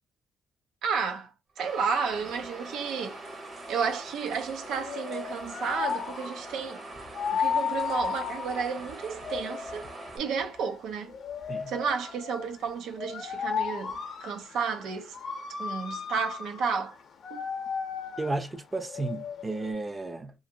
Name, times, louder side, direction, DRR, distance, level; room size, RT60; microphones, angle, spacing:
voice 1, 0.8-1.3 1.6-3.2 3.7-6.8 7.3-9.9 10.1-11.1 11.7-15.2 15.6-17.0 17.3-17.4, right 5 dB, 85° right, 0.5 m, -32 dB
sound 1, 1.6-10.2, right 2 dB, 40° right, 0.9 m, -43 dB
sound 2, 1.7-19.7, left 7 dB, 60° left, 0.6 m, -36 dB
voice 2, 18.2-20.3, right 2 dB, 25° right, 0.5 m, -33 dB
2.5 x 2.5 x 2.7 m
cardioid pair, 90°, 0 cm